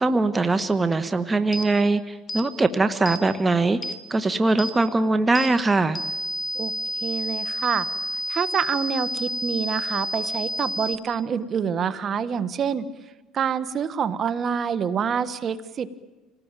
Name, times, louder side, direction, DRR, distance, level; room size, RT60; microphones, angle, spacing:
voice 1, 0.0-3.8 4.1-6.0, right 3 dB, 20° right, 11 dB, 1.3 m, -21 dB
sound 1, 1.5-1.7 2.3-2.5 3.1-3.2 3.8-4.0 4.6-4.7 5.4-5.5 6.0-11.0, equal, 35° left, 2.1 m, -30 dB
voice 2, 7.0-7.9 8.3-12.9 13.3-15.9, right 7 dB, 45° right, 14 dB, 1.5 m, -26 dB
27.0 x 19.5 x 9.1 m, 1.2 s
supercardioid pair, 95°, 0 cm